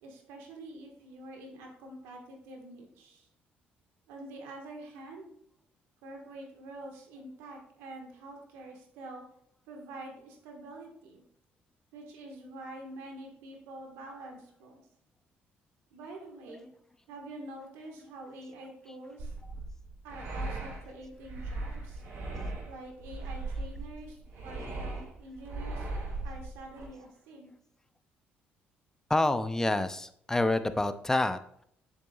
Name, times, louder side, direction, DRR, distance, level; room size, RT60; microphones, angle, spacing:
voice 1, 0.0-3.3 4.1-5.3 6.0-9.2 9.7-11.2 11.9-14.8 15.9-16.7 17.1-19.3 20.0-22.0 22.7-25.9 26.2-27.5, right 2 dB, 90° right, 1 dB, 1.6 m, -46 dB
sound 1, 19.2-26.9, right 2 dB, 70° right, 2.4 m, -38 dB
voice 2, 29.1-31.6, left 2 dB, 10° left, 11 dB, 0.6 m, -28 dB
8.0 x 6.9 x 2.4 m, 0.68 s
supercardioid pair, 75°, 4 cm